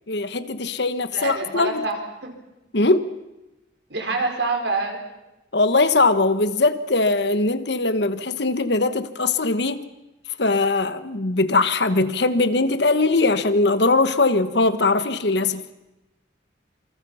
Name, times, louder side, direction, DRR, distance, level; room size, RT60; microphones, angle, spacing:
voice 1, 0.1-1.8 2.7-3.1 5.5-9.9 10.4-15.7, left 3 dB, 60° left, 1.2 m, -21 dB
voice 2, 1.1-2.3 3.9-5.0, right 3 dB, 60° right, 5.1 m, -26 dB
27.5 x 26.0 x 5.7 m
head